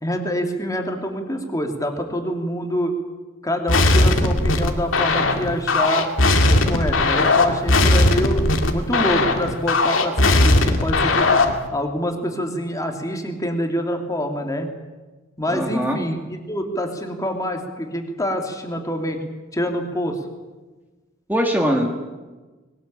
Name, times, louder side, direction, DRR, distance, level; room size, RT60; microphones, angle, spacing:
voice 1, 0.0-3.0 3.4-6.1 6.5-8.4 8.7-11.3 11.7-14.7 15.4-19.2 19.5-20.2, equal, 15° left, 3 dB, 2.8 m, -26 dB
sound 1, 3.7-11.6, left 2 dB, 75° left, 2.3 m, -18 dB
voice 2, 15.5-16.1 21.3-21.9, equal, 10° right, 2 dB, 2.1 m, -21 dB
21.5 x 19.0 x 8.8 m, 1.2 s
head